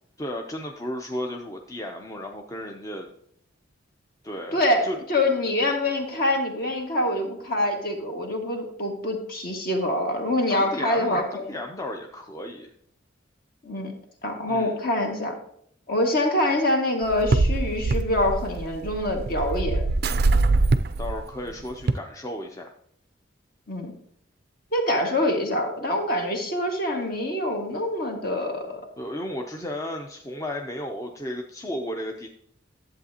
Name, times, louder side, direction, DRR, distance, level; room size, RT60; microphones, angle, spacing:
voice 1, 0.2-3.1 4.2-5.0 10.5-12.7 14.5-14.7 20.5-20.6 21.0-22.7 29.0-32.3, left 1 dB, 15° left, 2 dB, 0.6 m, -34 dB
voice 2, 4.5-11.5 13.6-13.9 14.2-15.3 15.9-19.8 23.7-23.9 24.7-28.8, left 1 dB, 50° left, 2 dB, 1.8 m, -25 dB
sound 1, 17.0-21.9, right 3 dB, 55° right, 0.4 m, -23 dB
11.0 x 7.9 x 2.8 m, 0.67 s
head